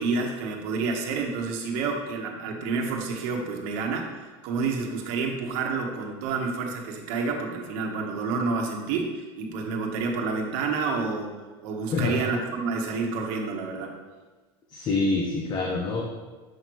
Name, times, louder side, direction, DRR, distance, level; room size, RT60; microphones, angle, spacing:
voice 1, 0.0-13.9, right 4 dB, 65° right, 2 dB, 1.2 m, -29 dB
voice 2, 11.9-12.2 14.7-16.0, left 3 dB, 35° left, -1 dB, 0.9 m, -26 dB
7.7 x 5.6 x 3.1 m, 1.3 s
supercardioid pair, 130°, 13 cm